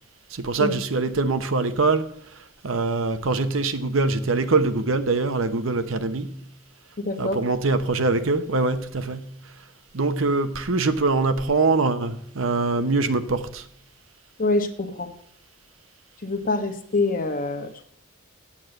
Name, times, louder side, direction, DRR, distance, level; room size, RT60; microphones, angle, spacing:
voice 1, 0.3-2.1 2.6-6.4 7.2-9.4 9.9-13.6, right 3 dB, 75° right, 0.9 m, -23 dB
voice 2, 7.0-7.4 14.4-15.1 16.2-17.8, left 2 dB, 40° left, 1.2 m, -25 dB
8.6 x 8.5 x 7.7 m
head